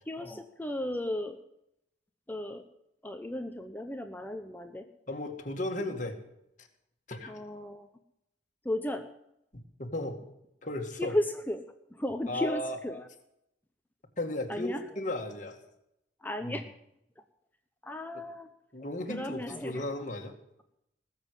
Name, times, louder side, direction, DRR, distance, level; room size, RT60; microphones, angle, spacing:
voice 1, 0.1-1.4 2.3-2.6 3.0-4.9 7.3-7.9 8.6-9.1 11.0-11.6 11.9-13.0 14.5-14.8 16.2-16.7 17.8-18.5 19.1-19.8, left 1 dB, 10° left, 6 dB, 0.9 m, -34 dB
voice 2, 5.1-6.1 6.6-6.7 7.1-7.3 9.5-10.2 10.6-11.1 12.3-12.8 14.2-15.6 16.4-16.6 18.1-18.3 18.7-20.3, left 1 dB, 40° left, 3 dB, 2.1 m, -35 dB
19.5 x 7.5 x 8.2 m, 0.80 s
head